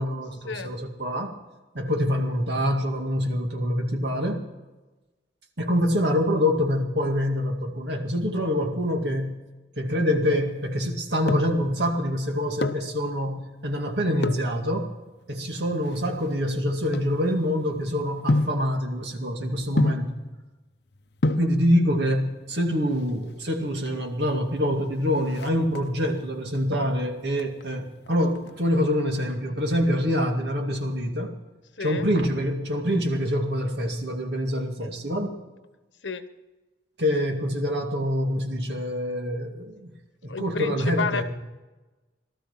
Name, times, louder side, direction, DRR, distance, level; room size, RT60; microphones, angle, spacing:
voice 1, 0.0-1.3 1.7-4.4 5.6-9.4 9.8-14.9 15.3-20.1 21.4-31.3 31.8-35.3 37.0-39.9 40.2-41.2, equal, 60° right, 3 dB, 2.1 m, -25 dB
sound 1, 10.9-11.7 12.4-12.9 14.2-14.5 15.3-17.7 18.3-18.7 19.8-20.2 20.9-21.0 21.2-21.6 22.7-23.2 23.5-23.6 23.8-24.0 24.4-24.8 25.1-26.1 26.5-27.0 27.3-28.5 28.8-28.9, left 2 dB, 60° left, 0.7 m, -28 dB
voice 2, 31.8-32.1 36.0-36.3 40.3-41.2, left 4 dB, 75° left, 11 dB, 1.1 m, -31 dB
18.5 x 13.0 x 5.8 m, 1.1 s
head